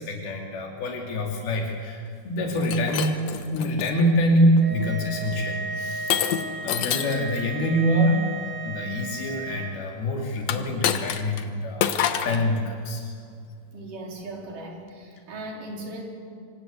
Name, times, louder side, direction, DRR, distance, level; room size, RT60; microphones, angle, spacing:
voice 1, 0.0-3.2 3.5-6.2 6.6-13.2, equal, 85° left, 1 dB, 4.5 m, -25 dB
Shatter, 2.5-3.9 4.6-4.9 6.1-7.3 10.4-11.4 11.8-12.4, left 9 dB, 65° left, 1.9 m, -27 dB
sound 1, 4.6-9.8, right 3 dB, 25° right, 2.3 m, -35 dB
voice 2, 13.7-16.0, right 2 dB, 60° right, 0 dB, 5.6 m, -38 dB
26.5 x 24.0 x 8.6 m, 2.3 s
omnidirectional pair, 4.3 m